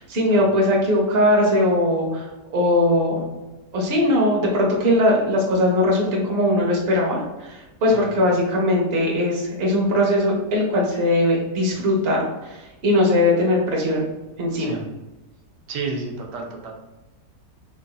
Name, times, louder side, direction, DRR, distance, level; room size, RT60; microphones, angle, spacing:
voice 1, 0.0-2.3 2.5-3.3 3.7-14.1 14.4-14.8, left 1 dB, 45° right, -2 dB, 1.0 m, -20 dB
voice 2, 15.7-16.7, right 4 dB, 90° right, 0 dB, 1.3 m, -31 dB
4.9 x 2.6 x 2.3 m, 1.1 s
omnidirectional pair, 1.8 m